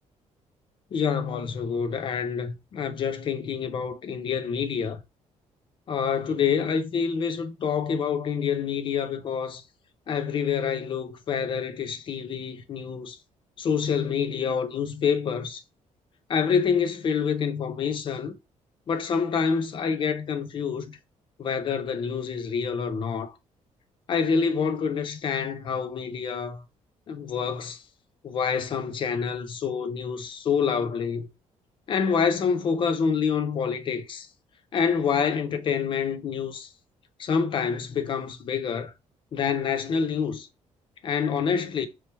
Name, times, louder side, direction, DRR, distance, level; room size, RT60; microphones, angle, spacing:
voice 1, 0.9-5.0 5.9-9.6 10.1-13.2 13.6-15.6 16.3-18.3 18.9-21.0 21.4-23.3 24.1-26.6 27.1-27.8 28.2-31.3 31.9-34.3 34.7-36.7 37.2-38.9 39.3-40.5 41.0-41.9, left 6 dB, 40° left, 0.5 m, -27 dB
3.0 x 2.9 x 3.2 m
cardioid pair, 165°, 13 cm